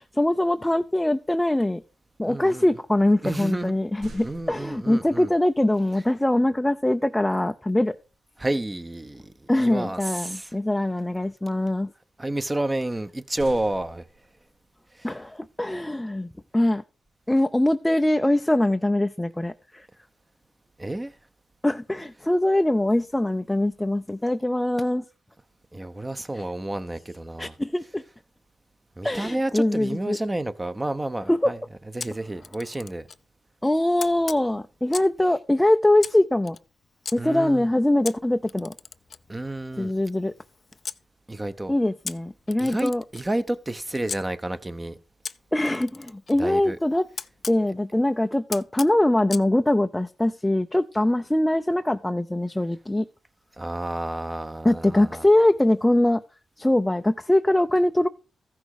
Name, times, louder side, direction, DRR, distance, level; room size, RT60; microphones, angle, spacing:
voice 1, 0.0-1.8 2.2-7.9 9.5-11.9 15.0-16.8 17.3-19.9 21.6-25.0 27.4-28.0 29.0-30.2 31.3-31.5 33.6-36.6 37.1-38.7 39.8-40.3 41.7-43.0 45.5-47.1 47.5-53.1 54.6-56.2 56.6-58.1, left 1 dB, 10° left, 0.6 m, -22 dB
voice 2, 2.3-2.6 3.2-3.7 4.2-5.3 8.4-10.5 12.2-14.0 15.0-15.1 20.8-21.1 25.7-27.5 29.0-31.6 31.9-33.0 37.2-37.7 39.3-39.9 41.3-41.7 42.6-45.0 46.4-46.8 53.6-55.2, right 1 dB, 20° right, 1.0 m, -30 dB
sound 1, 3.5-5.2 7.9-8.2 8.6-8.9 12.9-14.6, right 2 dB, 75° right, 2.2 m, -47 dB
Camera, 32.0-33.2 34.0-35.2 36.0-37.2 38.0-41.0 42.0-44.2 45.2-47.6 48.5-49.5, left 5 dB, 55° left, 0.5 m, -39 dB
14.0 x 6.1 x 4.8 m
cardioid pair, 65°, 0 cm